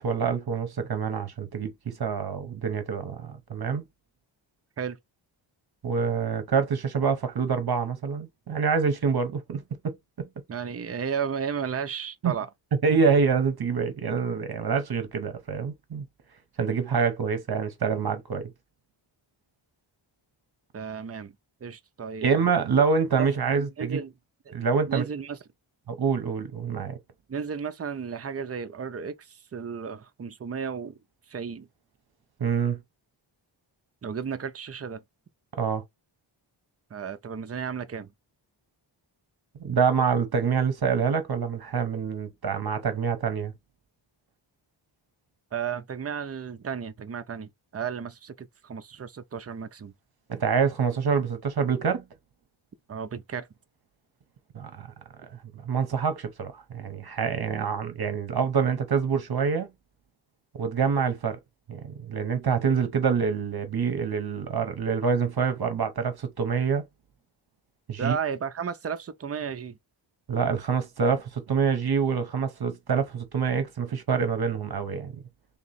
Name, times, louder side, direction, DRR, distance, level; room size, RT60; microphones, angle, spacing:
voice 1, 0.0-3.8 5.8-10.3 12.2-12.3 12.8-16.0 16.6-18.5 22.2-24.0 24.5-25.0 25.9-27.0 32.4-32.8 35.6-35.8 39.6-43.5 50.3-52.0 54.5-54.9 55.2-59.7 60.5-61.4 61.7-66.8 67.9-68.2 70.3-75.1, right 6 dB, 50° right, 0.9 m, -26 dB
voice 2, 10.5-12.5 20.7-21.3 21.6-22.3 23.2-24.1 24.5-24.6 24.9-25.4 27.3-30.9 31.3-31.7 34.0-35.0 36.9-38.1 45.5-49.9 52.9-53.5 68.0-69.8, right 6 dB, 30° right, 0.4 m, -33 dB
3.6 x 3.0 x 4.0 m
wide cardioid pair, 160°, 48 cm